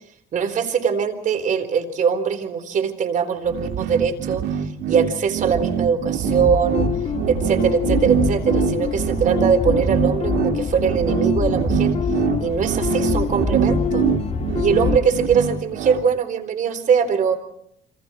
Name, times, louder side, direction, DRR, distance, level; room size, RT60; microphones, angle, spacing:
voice 1, 0.3-4.4 4.9-6.9 7.3-11.9 12.4-14.0 14.5-17.4, right 6 dB, 50° right, 8 dB, 4.0 m, -21 dB
sound 1, 3.5-16.0, right 9 dB, 75° right, 2.3 m, -23 dB
sound 2, 6.2-15.0, left 7 dB, 40° left, 2.6 m, -25 dB
28.5 x 25.5 x 4.5 m, 0.68 s
cardioid pair, 110°, 17 cm